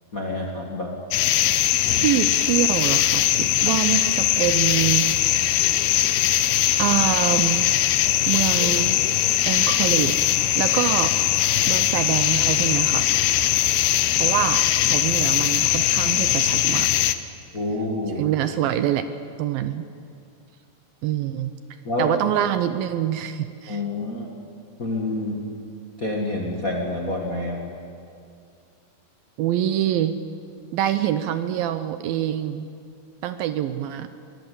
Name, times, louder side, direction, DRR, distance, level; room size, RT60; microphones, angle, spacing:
voice 1, 0.1-0.9 1.9-2.0 3.6-3.7 17.5-18.2 21.8-22.2 23.7-24.3 24.8-25.4 26.0-27.6, left 2 dB, 30° left, 0 dB, 1.6 m, -28 dB
sound 1, 1.1-17.2, left 13 dB, 85° left, 2.8 m, -21 dB
voice 2, 1.9-5.1 6.8-7.7 8.3-8.9 9.5-10.1 10.6-11.1 11.7-13.1 14.2-16.9 18.2-19.1 19.4-19.9 21.0-21.5 22.0-23.8 29.4-30.2 30.7-32.7 33.2-34.1, right 11 dB, 75° right, 10 dB, 2.3 m, -25 dB
23.0 x 19.0 x 8.6 m, 2.4 s
omnidirectional pair, 4.5 m